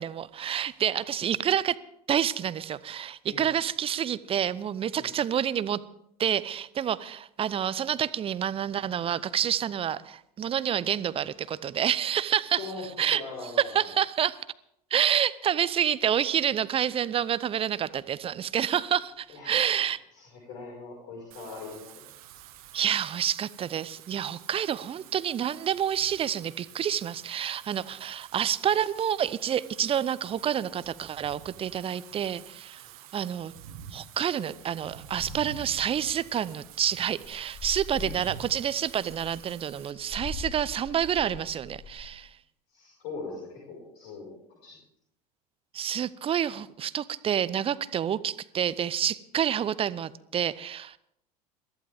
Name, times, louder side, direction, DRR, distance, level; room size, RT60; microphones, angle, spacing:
voice 1, 0.0-1.8 2.1-5.8 6.2-12.7 13.0-13.2 13.6-14.4 14.9-20.0 22.7-32.8 33.1-33.5 33.9-42.3 45.7-51.0, right 9 dB, 30° right, 17 dB, 0.7 m, -28 dB
voice 2, 12.5-12.9 13.1-13.9 19.3-19.7 20.1-22.0 37.9-38.2 42.7-44.8, left 3 dB, 55° left, -2 dB, 5.4 m, -41 dB
Wind / Rain, 21.3-39.9, right 8 dB, 65° right, 1.5 m, -48 dB
sound 1, 35.1-35.9 36.3-36.4 36.7-36.9 37.2-42.2, left 3 dB, 15° left, 2.4 m, -42 dB
22.0 x 14.5 x 3.6 m, 0.74 s
figure-of-eight pair, 70°, 20 cm